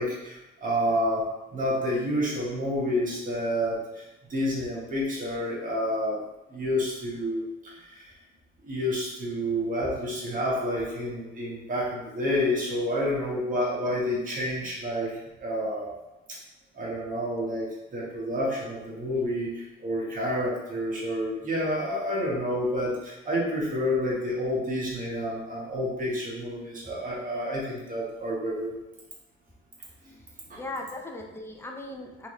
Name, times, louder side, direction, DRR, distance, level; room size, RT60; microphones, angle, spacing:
voice 1, 0.0-4.0 4.3-8.1 8.6-15.9 16.3-16.4 16.7-28.7 30.5-30.6, equal, 40° right, -5 dB, 1.5 m, -29 dB
voice 2, 30.2-32.3, left 2 dB, 10° left, 2 dB, 0.6 m, -39 dB
3.5 x 2.9 x 3.1 m, 0.97 s
cardioid pair, 90°, 20 cm